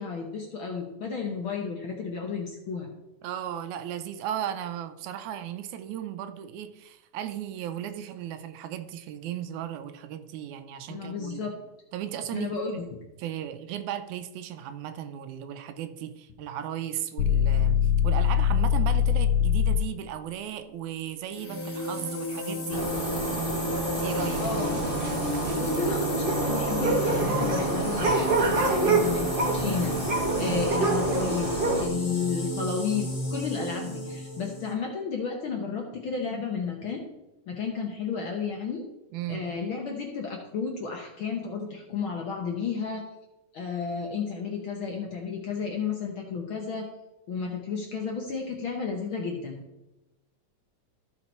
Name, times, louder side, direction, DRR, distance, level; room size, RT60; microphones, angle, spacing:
voice 1, 0.0-2.9 10.9-11.6 12.3-12.9 24.4-24.8 25.6-29.9 30.4-37.0 37.5-38.8 39.3-43.0 43.5-46.9 47.3-49.6, left 5 dB, 60° left, 1 dB, 1.4 m, -32 dB
voice 2, 3.2-11.5 11.9-12.8 13.2-17.8 18.0-22.8 24.0-24.4 24.7-24.8 30.5-30.8 39.1-39.5, right 10 dB, 80° right, 9 dB, 2.1 m, -36 dB
sound 1, 17.2-20.0, left 8 dB, 85° left, 1.4 m, -22 dB
sound 2, 21.3-34.7, equal, 35° left, 2.5 m, -32 dB
sound 3, 22.7-31.9, right 2 dB, 65° right, 0.5 m, -27 dB
14.0 x 4.8 x 4.3 m, 0.96 s
omnidirectional pair, 3.4 m